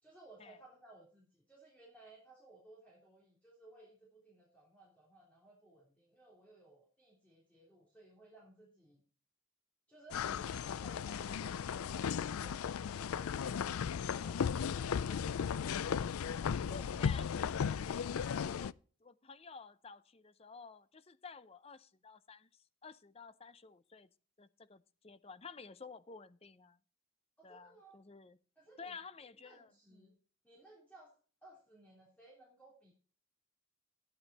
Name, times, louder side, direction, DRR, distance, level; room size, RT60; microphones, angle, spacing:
voice 1, 0.0-9.0 9.9-13.7 14.0-15.5 16.4-17.0 27.4-28.0 28.5-29.0 29.4-30.1 30.4-31.1 31.4-32.9, right 2 dB, 5° left, 3.2 m, -60 dB
sound 1, 10.1-18.7, left 7 dB, 90° left, 0.4 m, -36 dB
voice 2, 16.7-17.4 18.6-18.7 19.0-24.1 24.4-26.8 27.4-28.4 28.8-30.2, left 5 dB, 30° left, 0.6 m, -52 dB
12.0 x 9.5 x 4.1 m
head